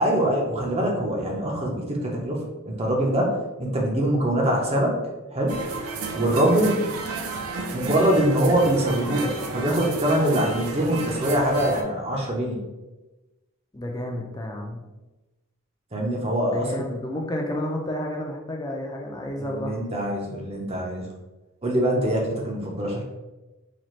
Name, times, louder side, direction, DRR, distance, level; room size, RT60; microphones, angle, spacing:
voice 1, 0.0-5.0 5.3-5.6 6.1-6.8 7.7-12.6 15.9-16.8 19.4-21.1 21.6-23.0, right 1 dB, 30° right, -1 dB, 0.7 m, -23 dB
sound 1, 5.5-11.8, right 3 dB, 85° right, 0.5 m, -32 dB
voice 2, 13.7-14.8 16.5-19.8, left 1 dB, 15° left, 0 dB, 0.5 m, -31 dB
4.1 x 2.5 x 3.1 m, 1.1 s
head